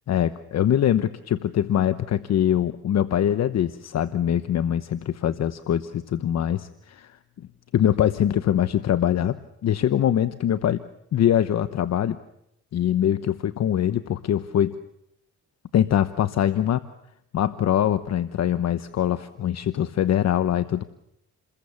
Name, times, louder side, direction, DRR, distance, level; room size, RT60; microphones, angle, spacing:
voice 1, 0.1-7.2 7.7-9.4 9.6-10.8 11.1-12.2 12.7-14.8 15.7-16.8 17.3-20.8, left 10 dB, 60° left, 12 dB, 1.0 m, -23 dB
29.0 x 21.5 x 7.2 m, 0.79 s
cardioid pair, 90°, 30 cm